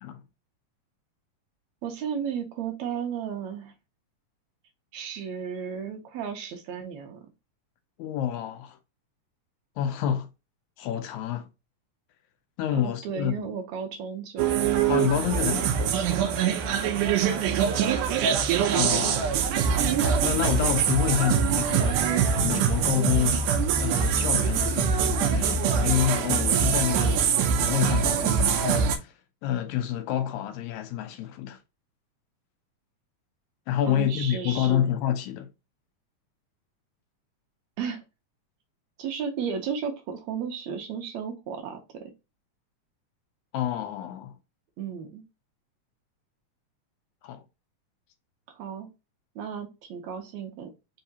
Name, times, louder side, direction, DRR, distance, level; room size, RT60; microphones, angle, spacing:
voice 1, 1.8-3.7 4.9-7.3 12.7-14.7 15.4-17.1 33.8-34.9 37.8-38.0 39.0-42.1 44.8-45.2 48.5-48.9 49.4-50.7, right 7 dB, 75° right, 2.0 m, -34 dB
voice 2, 8.0-8.8 9.8-10.3 10.8-11.5 12.6-13.5 14.9-15.7 18.8-19.4 20.0-22.1 22.4-27.2 27.6-29.1 29.4-31.6 33.7-35.5 43.5-44.3 47.2-47.4, left 10 dB, 80° left, 1.9 m, -28 dB
sound 1, 14.4-29.0, right 7 dB, 90° right, 2.2 m, -24 dB
4.8 x 3.4 x 2.7 m
omnidirectional pair, 3.5 m